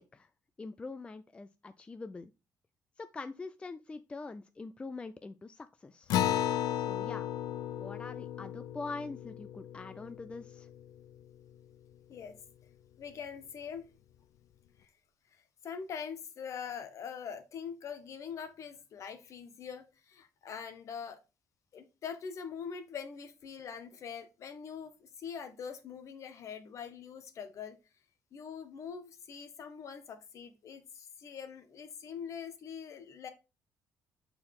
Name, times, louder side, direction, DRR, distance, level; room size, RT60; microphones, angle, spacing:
voice 1, 0.6-2.3 3.0-6.1 6.8-7.3 7.8-10.7, left 3 dB, 15° left, 0.3 m, -44 dB
Acoustic guitar, 6.1-11.0, left 11 dB, 90° left, 0.4 m, -34 dB
voice 2, 13.0-13.8 14.8-14.9 15.6-21.2 21.7-27.8 28.3-33.3, left 7 dB, 55° left, 1.2 m, -43 dB
6.6 x 4.4 x 3.7 m
cardioid pair, 130°, 6 cm